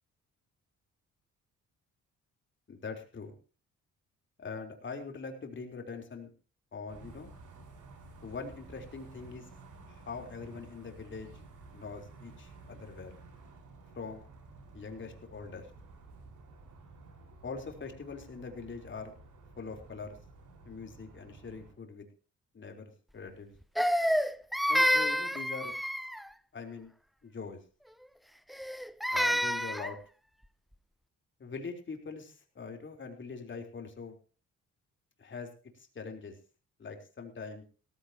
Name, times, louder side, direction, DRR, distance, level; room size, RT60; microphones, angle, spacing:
voice 1, 2.7-3.4 4.4-6.3 6.7-7.3 8.2-9.4 9.9-11.3 11.7-13.2 13.9-14.2 14.7-15.7 17.4-19.2 19.6-20.2 20.7-22.1 22.5-23.5 24.7-25.7 26.5-26.9 27.2-27.6 29.1-30.0 31.4-34.1 35.2-35.5 35.7-36.4 36.8-37.6, left 4 dB, 40° left, 4 dB, 3.9 m, -43 dB
sound 1, 6.9-21.7, right 3 dB, 75° right, 5.1 m, -53 dB
Crying sobbing, 23.8-26.3 28.5-29.9, equal, ahead, 0.6 m, -28 dB
17.5 x 14.5 x 2.9 m, 0.38 s
cardioid pair, 90°, 30 cm